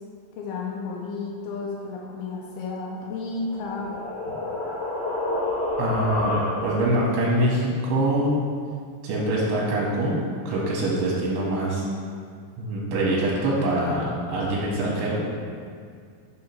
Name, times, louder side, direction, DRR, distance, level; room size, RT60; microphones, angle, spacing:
voice 1, 0.4-4.0, left 3 dB, 90° left, -3 dB, 2.2 m, -32 dB
sound 1, 3.2-6.9, left 2 dB, 70° left, 2.8 m, -29 dB
voice 2, 5.8-8.3 9.0-11.9 12.6-15.2, right 1 dB, 75° right, -5 dB, 2.8 m, -24 dB
6.6 x 2.9 x 5.7 m, 2.1 s
omnidirectional pair, 5.0 m